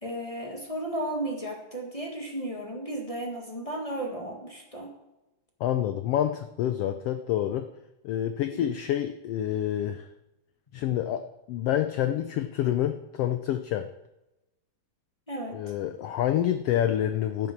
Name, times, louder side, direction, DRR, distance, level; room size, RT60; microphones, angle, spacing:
voice 1, 0.0-4.9 8.5-8.6 15.3-15.6, right 1 dB, 25° left, 0 dB, 0.8 m, -34 dB
voice 2, 5.6-7.7 8.0-10.1 10.7-13.9 15.5-17.5, left 11 dB, 85° left, 8 dB, 1.3 m, -28 dB
12.0 x 9.5 x 5.9 m, 0.96 s
omnidirectional pair, 3.4 m